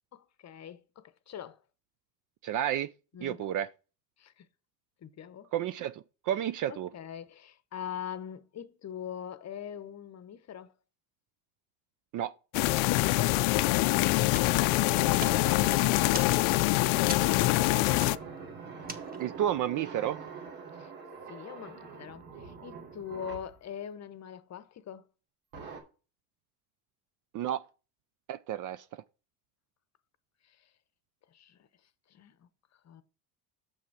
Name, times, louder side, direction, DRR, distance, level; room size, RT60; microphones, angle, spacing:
voice 1, 0.1-1.6 3.1-3.5 4.2-4.5 5.0-5.5 6.7-10.7 20.7-20.9 21.3-25.1 30.5-30.6 31.3-31.7 32.1-32.5 32.8-33.0, left 9 dB, 35° left, 0.8 m, -43 dB
voice 2, 2.4-2.9 3.2-3.7 5.5-6.9 12.1-12.3 19.2-20.2 27.3-27.6 28.3-28.8, right 11 dB, 45° right, 0.4 m, -31 dB
sound 1, 12.5-18.2, left 20 dB, 70° left, 0.5 m, -25 dB
sound 2, 14.3-19.5, right 2 dB, 20° right, 1.4 m, -44 dB
sound 3, 14.9-23.6 25.5-25.8, right 5 dB, 85° right, 2.8 m, -44 dB
6.9 x 6.1 x 4.6 m
supercardioid pair, 105°, 48 cm